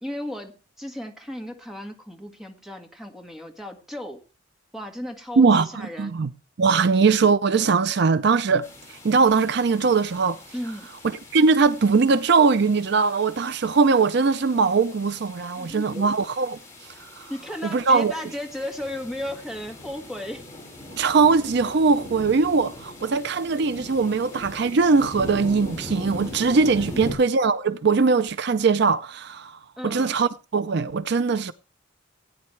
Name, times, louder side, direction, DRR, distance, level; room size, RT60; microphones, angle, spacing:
voice 1, 0.0-4.2 4.7-6.2 10.5-10.9 15.6-16.1 17.3-20.5 26.9-27.1 29.8-30.2, left 1 dB, ahead, 1.8 m, -35 dB
voice 2, 5.4-6.3 6.6-10.4 11.3-17.3 17.7-18.1 20.9-31.5, right 4 dB, 55° right, 0.5 m, -21 dB
sound 1, 8.6-27.1, left 1 dB, 15° left, 4.9 m, -41 dB
18.0 x 9.4 x 3.2 m
head